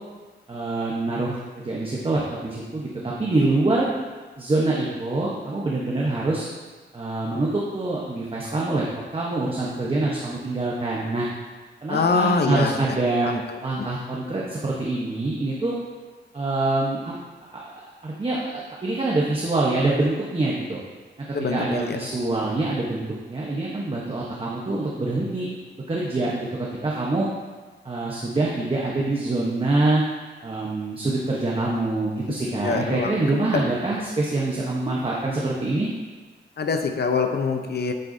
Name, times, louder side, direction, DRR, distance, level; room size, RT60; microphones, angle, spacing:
voice 1, 0.5-3.9 4.4-6.4 6.9-8.8 9.1-11.3 11.8-13.3 13.6-15.8 16.3-17.1 17.5-20.8 21.5-25.5 25.9-27.3 27.8-30.0 30.4-35.9, right 2 dB, 30° right, -4 dB, 1.0 m, -25 dB
voice 2, 11.9-12.8 13.2-13.6 21.3-22.0 32.6-33.1 33.5-33.6 36.6-37.9, left 4 dB, 60° left, 5 dB, 0.8 m, -24 dB
9.0 x 7.8 x 2.7 m, 1.3 s
wide cardioid pair, 135°, 19 cm